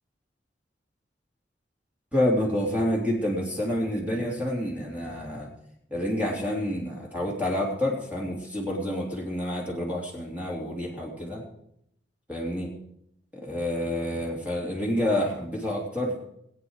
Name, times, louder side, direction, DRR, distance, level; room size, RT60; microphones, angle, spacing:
voice 1, 2.1-5.5 5.9-11.4 12.3-12.7 13.3-16.2, left 1 dB, 10° right, -3 dB, 3.3 m, -28 dB
21.0 x 9.2 x 4.8 m, 0.75 s
head